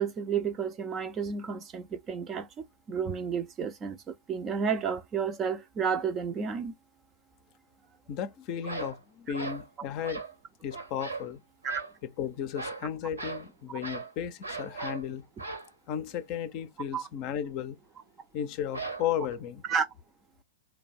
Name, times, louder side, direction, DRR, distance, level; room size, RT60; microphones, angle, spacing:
voice 1, 0.0-6.7 11.6-11.8 16.9-17.1 19.7-19.9, right 6 dB, 25° right, 0.5 m, -31 dB
voice 2, 8.1-10.2 10.6-11.4 12.0-15.3 15.9-17.8 18.3-19.6, left 9 dB, 40° left, 0.6 m, -34 dB
sound 1, 8.6-9.0 9.3-9.7 10.0-10.3 10.7-11.3 11.6-11.9 12.5-12.9 13.2-13.5 13.8-14.1 14.4-15.0 15.4-15.7 18.7-19.3, right 3 dB, 85° right, 1.1 m, -38 dB
3.3 x 2.3 x 4.0 m
figure-of-eight pair, 105°, 0 cm